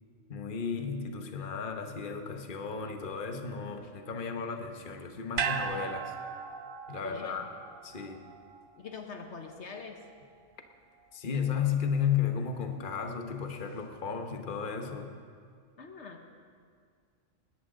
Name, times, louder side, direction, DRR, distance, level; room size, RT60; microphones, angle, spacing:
voice 1, 0.3-6.1 6.9-7.5 7.8-8.2 11.1-15.1, left 7 dB, 45° left, 5 dB, 1.2 m, -33 dB
sound 1, 5.4-9.7 10.0-10.1, right 6 dB, 50° right, 0.9 m, -37 dB
voice 2, 7.0-7.5 8.8-10.0 15.8-16.3, left 5 dB, 65° left, 4 dB, 1.3 m, -44 dB
21.0 x 17.5 x 3.8 m, 2.1 s
omnidirectional pair, 1.3 m